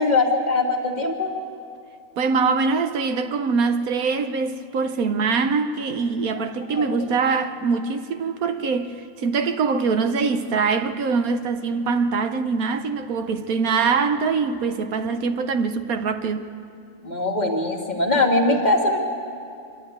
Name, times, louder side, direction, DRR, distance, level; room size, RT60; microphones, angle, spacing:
voice 1, 0.0-1.3 6.3-6.4 6.7-7.2 17.0-19.0, left 2 dB, 30° left, 1.8 m, -22 dB
voice 2, 2.2-16.5, right 5 dB, 70° right, 1.3 m, -23 dB
25.5 x 11.5 x 9.1 m
omnidirectional pair, 1.6 m